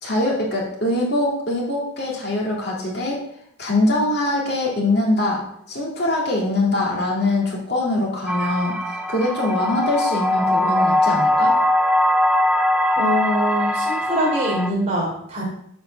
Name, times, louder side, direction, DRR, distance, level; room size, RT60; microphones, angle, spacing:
voice 1, 0.0-3.2 3.6-5.4 5.7-8.8 9.1-11.5, left 2 dB, 55° left, -3 dB, 2.5 m, -22 dB
sound 1, 8.3-14.7, left 1 dB, 5° right, 0.6 m, -20 dB
voice 2, 13.0-15.4, equal, 30° right, -4 dB, 3.6 m, -23 dB
7.9 x 5.0 x 6.4 m, 0.72 s
head